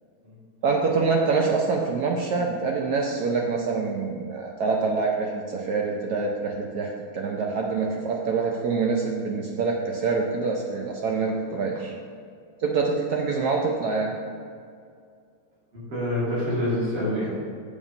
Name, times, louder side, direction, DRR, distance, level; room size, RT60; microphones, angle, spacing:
voice 1, 0.6-11.9 12.6-14.1, right 4 dB, 70° right, 0 dB, 0.9 m, -25 dB
voice 2, 15.7-17.3, left 1 dB, 55° right, -7 dB, 2.9 m, -26 dB
7.3 x 5.0 x 5.2 m, 2.3 s
omnidirectional pair, 2.3 m